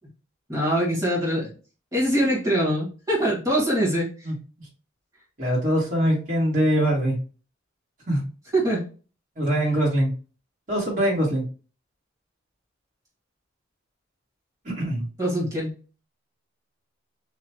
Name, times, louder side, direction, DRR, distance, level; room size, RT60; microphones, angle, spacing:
voice 1, 0.5-1.5 1.9-4.3 8.5-8.8 15.2-15.7, right 1 dB, 20° right, -5 dB, 2.0 m, -23 dB
voice 2, 5.4-7.2 8.1-8.2 9.4-10.1 10.7-11.4 14.7-15.1, right 1 dB, 45° right, -4 dB, 2.2 m, -23 dB
5.5 x 2.4 x 3.0 m, 0.35 s
head